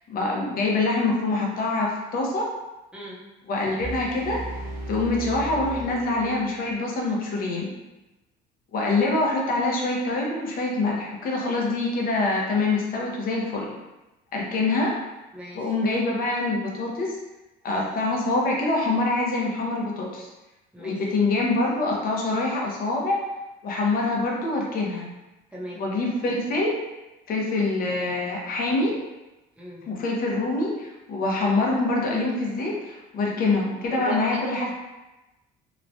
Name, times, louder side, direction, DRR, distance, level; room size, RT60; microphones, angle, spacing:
voice 1, 0.1-2.5 3.5-4.6 4.9-7.7 8.7-13.7 14.3-14.9 15.5-17.1 17.6-20.3 20.8-23.2 23.6-25.1 25.8-26.8 27.3-28.9 29.9-34.7, left 2 dB, 50° left, -2 dB, 0.7 m, -25 dB
voice 2, 2.9-3.2 15.3-15.7 20.7-21.0 25.5-25.8 29.6-29.9 33.9-34.7, right 1 dB, 5° right, -5 dB, 0.7 m, -37 dB
sound 1, 3.8-6.8, right 1 dB, 50° right, 0.5 m, -36 dB
3.0 x 2.1 x 2.6 m, 1.0 s
cardioid pair, 110°, 20 cm